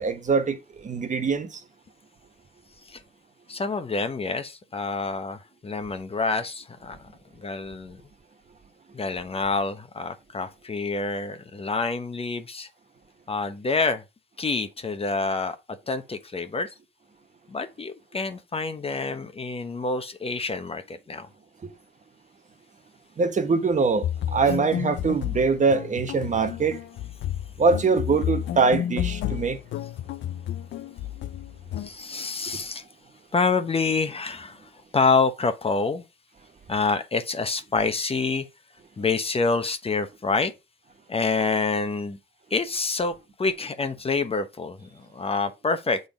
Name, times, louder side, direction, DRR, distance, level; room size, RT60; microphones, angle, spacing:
voice 1, 0.0-1.6 23.2-26.8 27.6-29.6, right 4 dB, 40° right, 1.2 m, -23 dB
voice 2, 3.5-7.1 7.3-8.0 8.9-12.7 13.3-14.0 14.4-16.7 17.5-21.3 31.8-32.8 33.3-36.0 36.7-38.4 39.0-40.5 41.1-42.2 42.5-46.0, left 4 dB, 30° left, 0.9 m, -27 dB
sound 1, 24.0-31.9, left 11 dB, 70° left, 0.5 m, -31 dB
6.9 x 4.0 x 5.2 m
cardioid pair, 90°, 20 cm